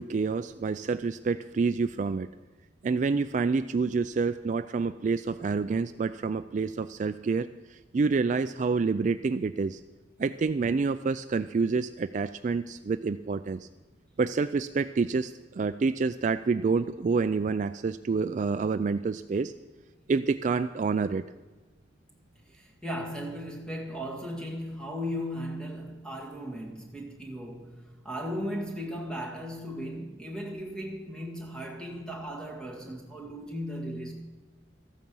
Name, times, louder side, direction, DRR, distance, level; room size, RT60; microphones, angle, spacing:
voice 1, 0.0-2.3 2.8-9.8 10.2-13.7 14.2-19.5 20.1-21.2, right 4 dB, 40° right, 0.3 m, -28 dB
voice 2, 22.5-34.1, equal, 5° left, 1.9 m, -36 dB
14.5 x 9.2 x 6.2 m
head